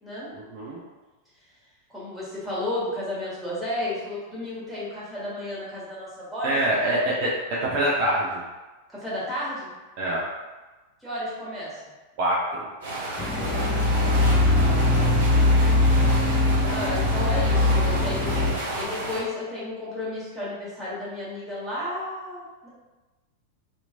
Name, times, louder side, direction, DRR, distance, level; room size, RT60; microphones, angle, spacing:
voice 1, 0.3-0.8 6.4-8.4 10.0-10.2 12.2-12.7, right 1 dB, 45° right, -6 dB, 0.6 m, -25 dB
voice 2, 1.9-6.6 8.9-9.7 11.0-11.8 14.2-14.8 16.7-18.3 18.8-22.7, left 1 dB, 5° right, -9 dB, 1.3 m, -32 dB
sound 1, 12.8-19.2, right 1 dB, 65° right, 1.0 m, -31 dB
sound 2, 13.2-18.5, left 2 dB, 20° left, 0.6 m, -21 dB
2.9 x 2.7 x 2.5 m, 1.2 s
figure-of-eight pair, 90°, 0 cm